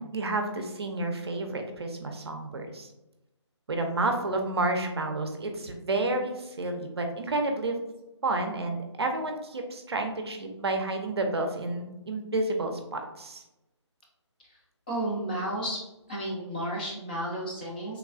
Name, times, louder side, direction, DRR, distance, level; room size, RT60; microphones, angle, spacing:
voice 1, 0.0-2.9 3.7-7.8 8.2-13.4, right 2 dB, 60° right, 4 dB, 0.5 m, -30 dB
voice 2, 14.9-15.8 16.1-18.0, right 1 dB, 20° left, -4 dB, 0.4 m, -32 dB
3.2 x 2.2 x 2.4 m, 0.94 s
figure-of-eight pair, 150°, 15 cm